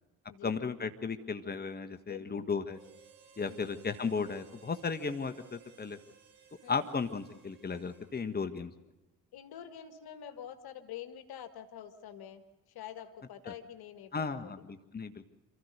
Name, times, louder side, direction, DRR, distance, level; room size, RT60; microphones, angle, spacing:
voice 1, 0.4-2.8 3.4-6.0 6.7-8.7 14.1-15.3, left 5 dB, 20° left, 7 dB, 1.6 m, -35 dB
voice 2, 2.1-2.5 3.4-3.7 6.6-6.8 9.3-12.4 12.8-14.5, left 9 dB, 60° left, 10 dB, 1.7 m, -46 dB
Harmonica, 2.7-8.4, right 7 dB, 75° right, 6.1 m, -59 dB
28.0 x 14.0 x 6.7 m, 1.1 s
hypercardioid pair, 45°, 42 cm